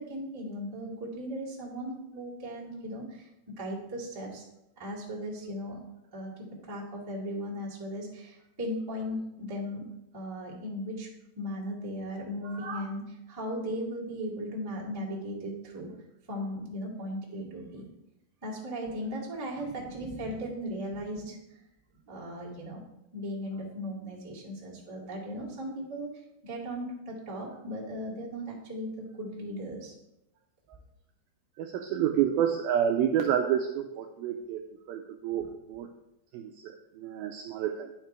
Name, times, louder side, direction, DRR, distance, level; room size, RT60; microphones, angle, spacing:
voice 1, 0.0-3.2 3.6-4.4 4.8-5.8 6.1-11.1 11.3-13.0 13.3-15.9 16.3-17.8 18.4-21.4 22.1-22.8 23.1-26.1 26.4-29.9, equal, 15° right, -6 dB, 0.8 m, -37 dB
voice 2, 12.4-12.9 31.6-34.6 34.9-35.9 36.3-37.9, right 9 dB, 90° right, 5 dB, 2.1 m, -29 dB
9.9 x 5.8 x 4.5 m, 0.87 s
omnidirectional pair, 4.8 m